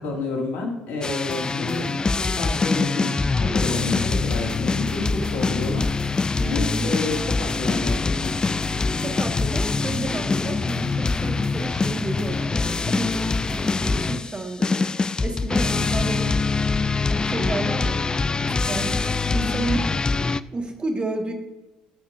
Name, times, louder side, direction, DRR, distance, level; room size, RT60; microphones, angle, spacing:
voice 1, 0.0-5.9 6.4-8.4 15.7-15.9, left 3 dB, 65° left, 1 dB, 2.2 m, -30 dB
sound 1, 1.0-20.4, left 4 dB, 25° left, 0.3 m, -24 dB
voice 2, 6.4-6.9 9.0-16.4 17.2-18.1 18.4-19.0 19.3-19.9 20.2-21.3, right 2 dB, 30° right, 4 dB, 1.6 m, -31 dB
14.5 x 7.0 x 2.6 m, 1.0 s
hypercardioid pair, 55°, 3 cm